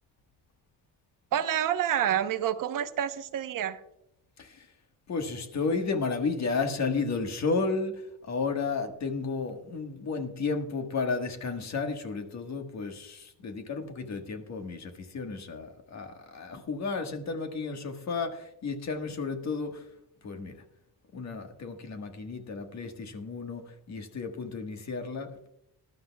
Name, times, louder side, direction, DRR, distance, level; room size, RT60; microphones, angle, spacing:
voice 1, 1.3-3.8, right 10 dB, 60° right, 10 dB, 1.0 m, -28 dB
voice 2, 5.1-19.9 20.2-20.6 21.1-25.5, left 4 dB, 50° left, 5 dB, 1.5 m, -33 dB
19.5 x 12.0 x 2.3 m, 0.79 s
cardioid pair, 130°, 36 cm